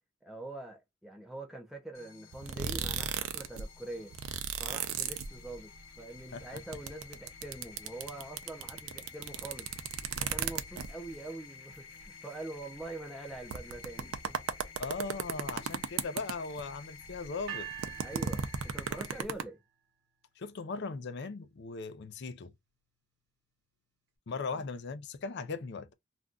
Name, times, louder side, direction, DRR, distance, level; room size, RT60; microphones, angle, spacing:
voice 1, 0.2-4.1 4.6-9.7 10.2-14.4 18.0-19.6 24.5-24.7, right 2 dB, ahead, 0.4 m, -44 dB
sound 1, 1.9-19.2, left 6 dB, 90° left, 1.0 m, -52 dB
sound 2, 2.3-3.6 3.9-5.8 6.1-11.1 11.7-11.8 12.0-12.1 12.8-12.9 13.3-16.7 17.0-19.4, right 7 dB, 85° right, 0.5 m, -35 dB
voice 2, 14.8-17.7 20.4-22.5 24.3-25.9, left 4 dB, 55° left, 0.5 m, -38 dB
sound 3, 17.5-19.6, right 11 dB, 55° right, 0.8 m, -45 dB
2.5 x 2.3 x 3.5 m
head